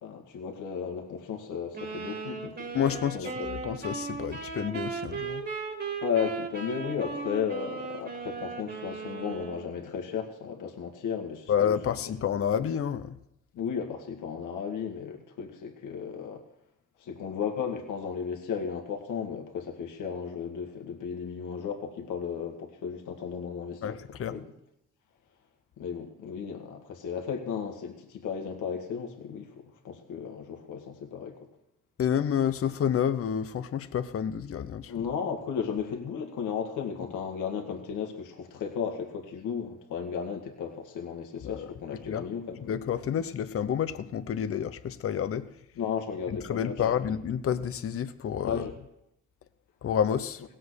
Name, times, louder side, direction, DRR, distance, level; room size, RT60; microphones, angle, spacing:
voice 1, 0.0-2.7 3.1-3.5 6.0-11.9 13.5-16.4 17.0-24.0 24.3-24.5 25.8-31.5 34.9-42.6 45.8-47.1 48.4-48.8, left 7 dB, 80° left, 3 dB, 1.9 m, -34 dB
sound 1, 1.7-9.7, right 4 dB, 35° right, 2.4 m, -37 dB
voice 2, 2.7-5.4 11.5-13.2 23.8-24.4 32.0-35.0 41.4-41.7 42.1-42.3 42.6-45.5 46.3-48.6 49.8-50.4, left 8 dB, 50° left, 12 dB, 0.8 m, -29 dB
17.0 x 7.8 x 6.4 m, 0.82 s
cardioid pair, 90°, 30 cm